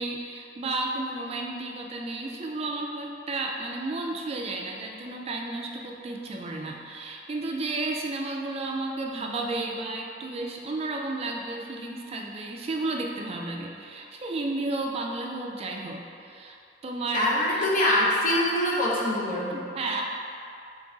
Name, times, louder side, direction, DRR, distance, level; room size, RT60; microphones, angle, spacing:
voice 1, 0.0-16.6 16.8-17.2 19.5-20.0, right 2 dB, 35° right, 0 dB, 0.4 m, -32 dB
voice 2, 17.1-19.7, left 1 dB, 50° left, -5 dB, 0.8 m, -24 dB
3.8 x 3.6 x 3.9 m, 2.4 s
head